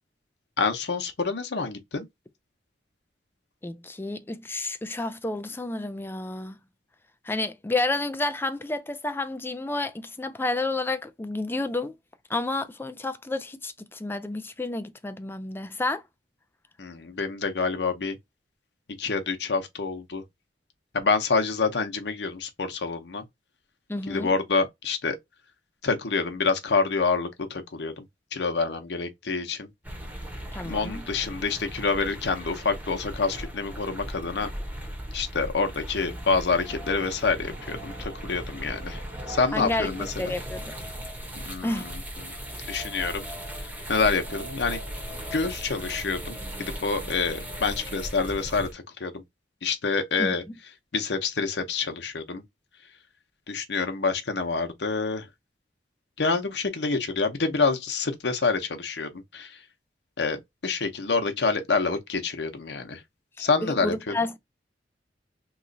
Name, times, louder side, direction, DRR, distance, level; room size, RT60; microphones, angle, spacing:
voice 1, 0.6-2.1 16.8-18.2 19.0-20.2 20.9-23.2 24.1-25.2 25.8-28.0 28.3-29.7 30.6-34.5 35.1-39.0 39.3-40.4 41.3-42.0 42.3-42.4 42.7-43.3 43.6-44.8 45.3-49.2 49.6-50.4 50.9-52.4 53.5-55.3 56.2-59.6 60.2-63.0 63.4-64.1, left 4 dB, 70° left, 0.8 m, -27 dB
voice 2, 3.6-6.6 7.2-11.9 12.3-16.0 23.9-24.3 30.5-31.1 39.5-39.9 40.2-40.7 41.6-41.9 50.2-50.3 63.6-64.4, left 2 dB, 15° left, 0.4 m, -30 dB
sound 1, 29.8-48.7, equal, 10° right, 0.9 m, -37 dB
3.1 x 2.3 x 3.8 m
head